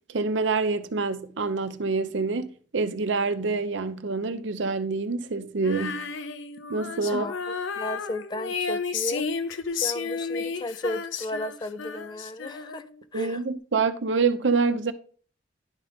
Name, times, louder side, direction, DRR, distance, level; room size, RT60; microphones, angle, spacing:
voice 1, 0.1-6.0 6.7-7.3 13.1-14.9, right 4 dB, 70° right, 0.7 m, -26 dB
Female singing, 5.6-13.0, left 5 dB, 75° left, 0.6 m, -32 dB
voice 2, 7.0-9.2 9.7-13.4, left 1 dB, 25° left, 0.3 m, -34 dB
10.5 x 3.9 x 3.5 m
head